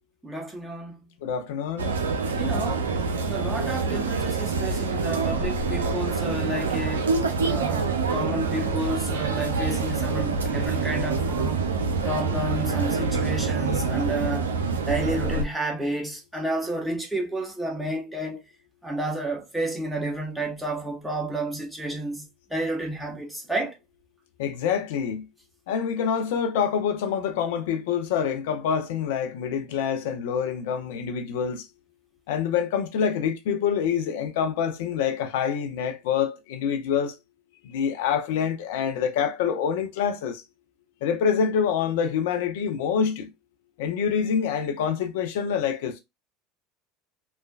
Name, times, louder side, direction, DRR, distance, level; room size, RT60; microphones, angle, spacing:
voice 1, 0.2-1.0 2.3-2.9 3.3-7.1 7.4-11.6 12.0-14.5 14.8-18.4 18.8-23.7, right 1 dB, 10° right, 1.1 m, -31 dB
voice 2, 1.2-1.9 24.4-25.2 25.7-31.6 32.3-37.2 37.6-40.4 41.0-43.3 43.8-46.0, left 7 dB, 70° left, 0.5 m, -26 dB
sound 1, 1.8-15.4, right 4 dB, 85° right, 0.4 m, -26 dB
3.2 x 2.2 x 2.3 m
hypercardioid pair, 75°, 0 cm